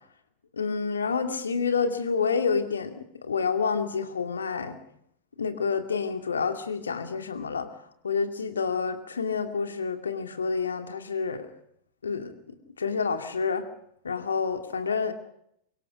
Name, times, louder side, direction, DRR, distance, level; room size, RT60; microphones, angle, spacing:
voice 1, 0.5-4.8 5.4-7.7 8.0-11.5 12.0-12.3 12.8-13.7 14.0-15.1, left 5 dB, 70° left, 7 dB, 2.4 m, -28 dB
24.5 x 22.0 x 5.2 m, 0.71 s
figure-of-eight pair, 90°, 0 cm